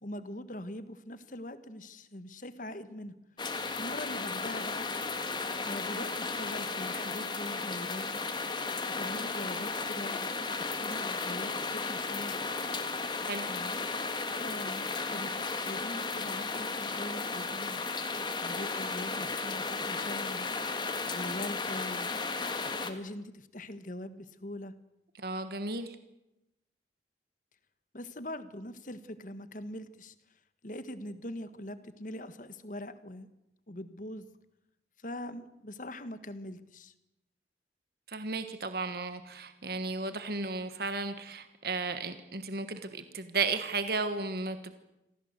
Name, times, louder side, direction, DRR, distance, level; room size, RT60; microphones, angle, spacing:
voice 1, 0.0-3.2 3.8-4.9 5.6-8.1 9.0-10.3 10.6-12.4 13.4-13.8 14.2-17.8 18.4-20.5 21.1-22.1 22.6-24.8 27.9-30.1 30.6-33.3 33.7-34.3 35.0-36.9, left 1 dB, 45° left, 12 dB, 1.5 m, -42 dB
sound 1, 3.4-22.9, left 4 dB, 25° left, 1.9 m, -34 dB
voice 2, 25.2-25.9 38.1-44.7, right 3 dB, 55° right, 10 dB, 1.4 m, -34 dB
26.5 x 17.0 x 8.2 m, 0.91 s
head